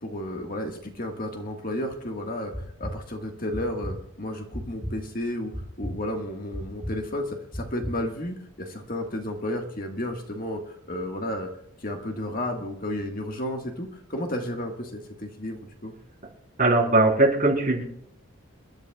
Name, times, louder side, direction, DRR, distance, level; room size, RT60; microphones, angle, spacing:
voice 1, 0.0-11.5 11.8-15.9, left 1 dB, 40° left, 2 dB, 1.6 m, -32 dB
sound 1, 2.5-2.9 3.5-3.9 4.5-4.9 5.5-5.9 6.5-6.9 7.5-7.9, equal, ahead, 1.5 m, -33 dB
voice 2, 16.6-17.8, right 2 dB, 40° right, -2 dB, 3.7 m, -20 dB
27.5 x 11.5 x 2.3 m, 0.69 s
head